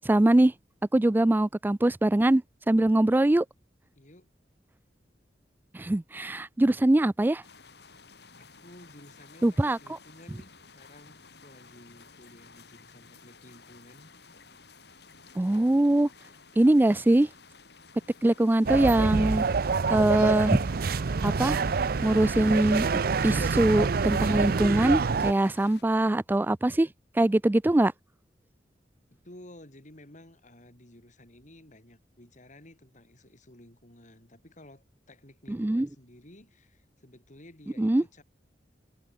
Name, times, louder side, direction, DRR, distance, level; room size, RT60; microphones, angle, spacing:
voice 1, 0.0-0.5 0.9-3.4 5.7-7.4 9.4-9.8 15.4-16.1 16.6-17.3 18.2-19.4 19.9-20.6 21.2-21.6 22.0-22.9 23.2-26.9 27.2-27.9 35.5-35.9 37.8-38.0, right 1 dB, 10° right, 0.3 m, -22 dB
voice 2, 4.0-4.3 8.4-14.1 29.1-38.2, left 1 dB, 45° left, 6.2 m, -53 dB
sound 1, 7.4-25.8, left 4 dB, 70° left, 7.5 m, -53 dB
sound 2, 18.6-25.3, right 4 dB, 60° right, 0.6 m, -26 dB
head